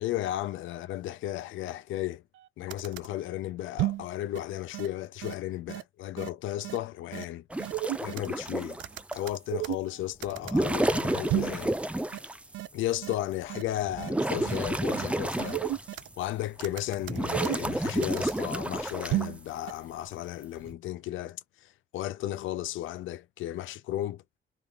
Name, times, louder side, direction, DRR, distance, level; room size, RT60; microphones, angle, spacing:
voice 1, 0.0-2.2 2.6-7.5 8.0-8.8 9.1-11.8 12.7-15.6 16.2-24.2, left 13 dB, 80° left, 0.5 m, -34 dB
sound 1, 2.4-2.5 2.7-3.1 3.8-4.1 4.4-4.5 4.7-4.9 5.2-5.3 5.7-5.8 6.2-6.3 6.6-6.8 7.1-7.2 7.6-8.3 8.8-9.9 10.2-10.6 11.3-11.6 12.1-12.2 12.5-12.7 13.0-13.1 13.5-13.6 14.0-14.1 14.4-14.6 14.9-15.1 15.4-16.1 16.6-17.7 18.0-18.4 19.1-19.4 19.7-19.8, right 16 dB, 75° right, 0.4 m, -32 dB
sound 2, 7.5-9.3 10.3-12.5 13.0-13.1 13.6-16.1 16.6-19.3 20.4-20.7, right 1 dB, 5° right, 0.5 m, -31 dB
3.0 x 2.4 x 3.5 m
cardioid pair, 90°, 20 cm